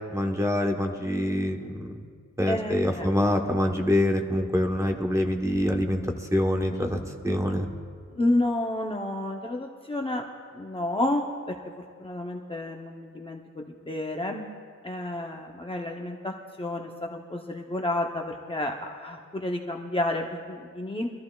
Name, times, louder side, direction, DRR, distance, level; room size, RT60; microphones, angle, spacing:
voice 1, 0.1-2.0 2.4-7.7, left 1 dB, 10° right, 2 dB, 1.0 m, -25 dB
voice 2, 2.5-3.1 8.1-10.2 10.5-11.5 12.0-14.4 14.8-21.1, left 1 dB, 20° left, 1 dB, 0.7 m, -30 dB
24.0 x 14.0 x 2.3 m, 2.1 s
wide cardioid pair, 135°, 31 cm